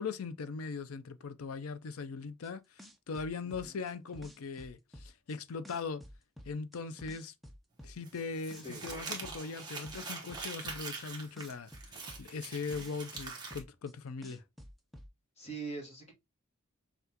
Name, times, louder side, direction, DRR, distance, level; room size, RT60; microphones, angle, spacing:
voice 1, 0.0-2.6 3.1-6.0 6.5-7.3 7.8-11.7 12.2-14.4, left 4 dB, 75° left, 0.5 m, -40 dB
sound 1, 2.4-2.5 2.8-5.4 5.6-8.2 8.5-11.1 11.4-13.9 14.2-15.1, equal, ahead, 0.4 m, -51 dB
Crumpling crinkling, 8.1-13.6, right 4 dB, 20° right, 1.0 m, -43 dB
voice 2, 15.4-16.1, right 3 dB, 30° left, 1.2 m, -42 dB
5.6 x 2.4 x 2.8 m
head